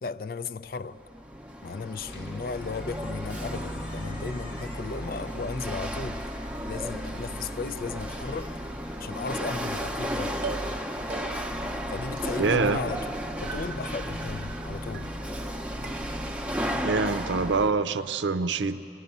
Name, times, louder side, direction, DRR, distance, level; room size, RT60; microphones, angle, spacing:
voice 1, 0.0-1.0 1.6-6.3 6.6-8.6 9.0-10.4 11.9-13.1 13.4-15.1, left 4 dB, 50° left, 0.4 m, -35 dB
Chatter / Hiss / Rattle, 0.8-17.7, equal, 5° right, 0.7 m, -34 dB
Squeak, 1.9-10.1, left 2 dB, 85° left, 1.8 m, -51 dB
sound 1, 9.8-10.1 10.4-10.8 11.1-11.6 12.2-12.8 13.0-13.7 14.0-14.6 14.9-15.5 15.8-16.5 16.9-17.4, right 5 dB, 50° right, 0.7 m, -42 dB
voice 2, 12.4-12.8 16.8-18.8, right 4 dB, 90° right, 0.6 m, -25 dB
26.0 x 19.0 x 5.5 m
head